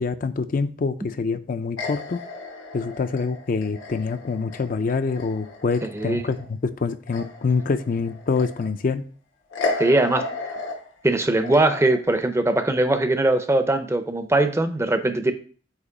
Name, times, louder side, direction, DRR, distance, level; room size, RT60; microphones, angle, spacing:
voice 1, 0.0-2.2 2.7-9.0, left 4 dB, 45° left, 10 dB, 0.4 m, -25 dB
sound 1, 1.8-6.5 6.8-8.9 9.5-12.0, left 3 dB, 90° left, 1.2 m, -34 dB
voice 2, 5.8-6.2 9.8-10.3 11.0-15.3, right 2 dB, 15° right, 9 dB, 0.5 m, -21 dB
8.2 x 3.0 x 4.7 m, 0.42 s
head